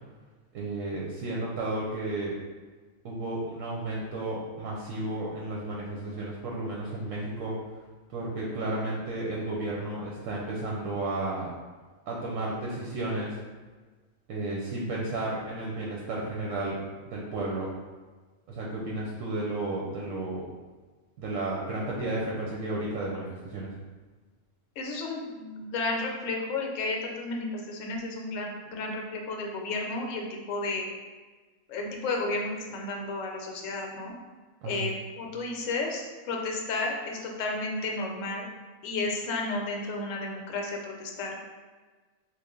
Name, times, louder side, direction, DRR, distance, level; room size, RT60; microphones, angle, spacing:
voice 1, 0.5-2.3 3.0-7.6 8.1-11.5 12.1-13.4 14.3-16.8 17.0-17.7 18.5-20.5 21.2-23.7 34.6-34.8, right 2 dB, 75° right, -3 dB, 0.9 m, -33 dB
voice 2, 24.8-30.9 31.7-34.1 34.6-38.4 38.8-41.4, left 3 dB, 70° left, 1 dB, 0.9 m, -32 dB
3.2 x 2.3 x 3.6 m, 1.4 s
omnidirectional pair, 1.4 m